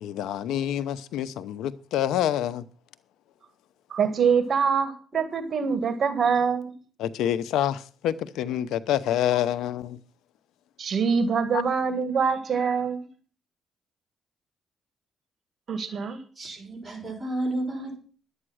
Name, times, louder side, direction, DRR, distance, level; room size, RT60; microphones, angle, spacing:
voice 1, 0.0-2.6 7.0-10.0 11.5-11.6, left 11 dB, 85° left, 0.8 m, -27 dB
voice 2, 3.9-6.8 10.8-13.1 15.7-16.2, right 6 dB, 50° right, 2.0 m, -24 dB
voice 3, 16.4-18.0, right 1 dB, 15° right, 6.3 m, -31 dB
11.0 x 8.8 x 6.3 m
cardioid pair, 90°, 0 cm